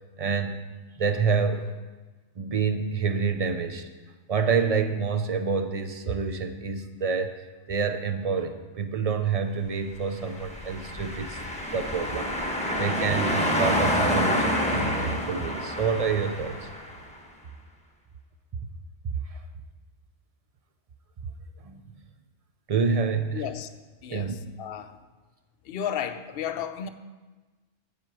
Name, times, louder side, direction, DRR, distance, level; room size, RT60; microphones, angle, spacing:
voice 1, 0.2-0.6 1.0-1.7 2.4-3.9 4.3-7.4 7.7-11.4 11.7-12.3 12.8-16.6 19.3-19.4 21.6-21.8 22.7-23.5 24.1-24.3, right 5 dB, 40° right, 0.6 m, -27 dB
sound 1, 10.3-17.0, equal, 5° left, 1.2 m, -28 dB
voice 2, 23.3-23.7 24.0-25.0 25.6-26.9, left 9 dB, 60° left, 0.7 m, -33 dB
8.4 x 7.5 x 6.0 m
omnidirectional pair, 1.2 m